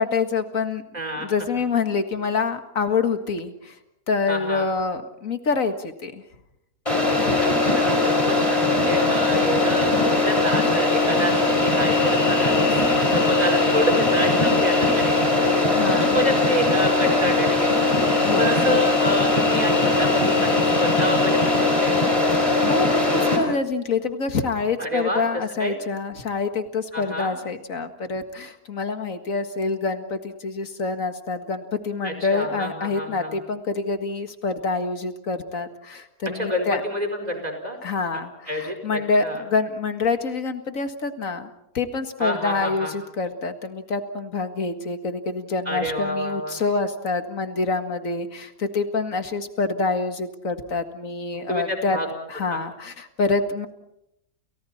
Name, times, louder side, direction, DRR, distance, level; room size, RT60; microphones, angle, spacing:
voice 1, 0.0-0.8 1.2-3.8 4.1-6.2 7.2-7.4 12.7-12.8 15.7-16.2 18.3-18.6 22.4-36.8 37.8-41.5 41.7-52.0 52.3-53.7, left 4 dB, 60° left, 7 dB, 2.2 m, -26 dB
voice 2, 0.9-1.6 4.3-4.7 7.4-12.6 13.1-15.4 15.9-18.0 18.4-22.4 24.8-25.8 26.9-27.3 32.0-33.4 36.3-37.8 38.1-38.2 38.5-39.4 42.2-42.9 45.6-46.6 51.3-52.1 52.5-52.6, equal, 25° right, 4 dB, 4.9 m, -28 dB
sound 1, 6.9-23.4, left 2 dB, 20° left, 5.5 m, -20 dB
30.0 x 29.5 x 4.3 m, 0.82 s
omnidirectional pair, 1.6 m